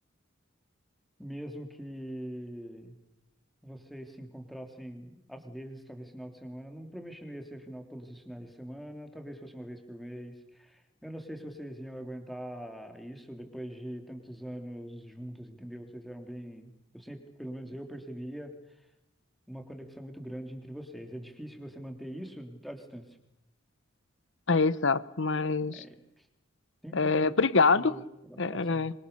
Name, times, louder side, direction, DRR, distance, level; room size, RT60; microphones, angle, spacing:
voice 1, 1.2-3.0 3.6-18.5 19.5-23.1 25.6-26.2 26.8-27.3 27.7-28.9, equal, ahead, 4 dB, 3.2 m, -43 dB
voice 2, 24.5-25.8 26.9-27.9 28.4-28.9, left 4 dB, 65° left, 16 dB, 1.1 m, -25 dB
25.0 x 25.0 x 6.9 m, 0.89 s
head